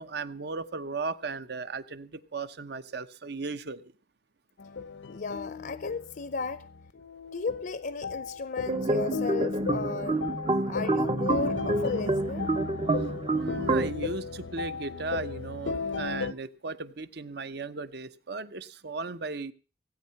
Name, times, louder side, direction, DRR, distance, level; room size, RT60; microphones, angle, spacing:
voice 1, 0.0-3.8 10.6-10.7 13.3-19.5, right 3 dB, 60° right, 0.8 m, -36 dB
sound 1, 4.6-16.3, left 5 dB, 90° left, 0.9 m, -36 dB
voice 2, 5.1-6.7 7.3-10.2 10.7-12.5, left 4 dB, 50° left, 0.6 m, -35 dB
sound 2, 8.7-13.9, right 2 dB, 30° right, 0.6 m, -28 dB
16.5 x 9.4 x 5.8 m
head